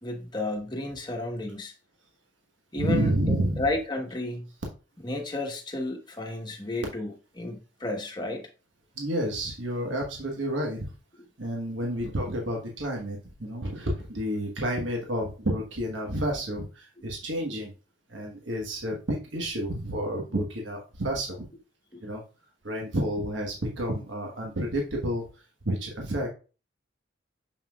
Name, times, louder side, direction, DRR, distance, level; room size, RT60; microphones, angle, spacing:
voice 1, 0.0-1.7 2.7-4.5 5.0-8.4 21.9-22.0, left 2 dB, 25° left, 1.2 m, -32 dB
voice 2, 2.8-3.7 8.9-10.9 11.4-17.7 18.1-21.4 22.0-22.2 22.6-26.3, right 1 dB, 75° right, 1.3 m, -30 dB
6.8 x 5.8 x 2.4 m
head